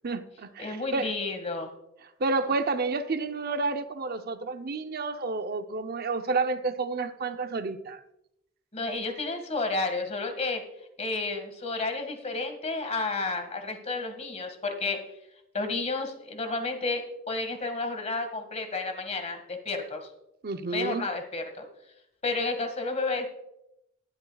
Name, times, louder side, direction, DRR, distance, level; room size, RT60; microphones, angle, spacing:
voice 1, 0.0-1.2 2.2-8.0 20.4-21.1, right 3 dB, 50° right, 0.7 m, -30 dB
voice 2, 0.6-1.7 8.7-10.6 11.0-15.0 15.5-20.1 20.7-21.7 22.2-23.3, left 3 dB, 35° left, 1.8 m, -31 dB
19.0 x 12.0 x 2.3 m
head